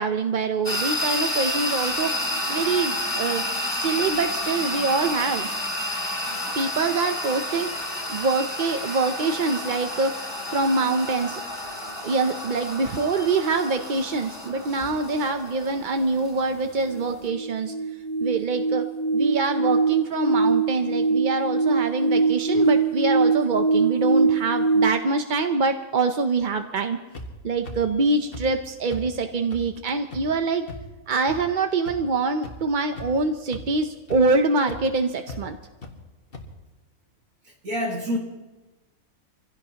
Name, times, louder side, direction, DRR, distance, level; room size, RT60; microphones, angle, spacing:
voice 1, 0.0-2.1 2.5-3.5 3.7-5.5 6.6-7.7 8.1-10.1 10.5-11.4 12.0-17.7 18.2-18.8 19.1-27.0 27.4-30.6 31.1-35.6, right 3 dB, 50° right, 6 dB, 0.6 m, -24 dB
sound 1, 0.6-17.3, left 1 dB, 20° left, 2.9 m, -30 dB
sound 2, 16.8-24.9, right 4 dB, 75° left, 1.3 m, -23 dB
sound 3, 27.1-27.3 27.6-27.8 28.3-28.4 28.9-29.0 29.5-29.6 30.1-30.2 30.7-30.8 31.3-31.4 31.9-32.0 32.4-32.5 32.9-33.2 33.5-33.6 34.1-34.2 34.7-34.8 35.3-35.4 35.8-35.9 36.3-36.4, left 3 dB, 40° left, 1.6 m, -37 dB
voice 2, 37.4-38.2, equal, 65° right, -1 dB, 2.2 m, -28 dB
26.0 x 16.0 x 2.9 m, 1.2 s
omnidirectional pair, 1.6 m